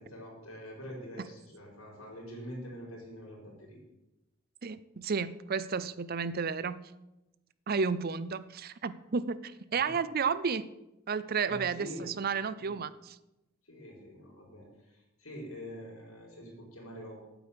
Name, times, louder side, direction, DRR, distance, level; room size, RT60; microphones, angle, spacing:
voice 1, 0.0-3.8 9.8-9.9 11.4-12.1 12.6-12.8 13.6-17.3, equal, 90° left, -1 dB, 4.7 m, -45 dB
voice 2, 4.6-6.9 7.7-10.7 11.1-13.2, right 5 dB, 45° right, 16 dB, 0.5 m, -32 dB
9.0 x 8.4 x 8.5 m, 0.96 s
head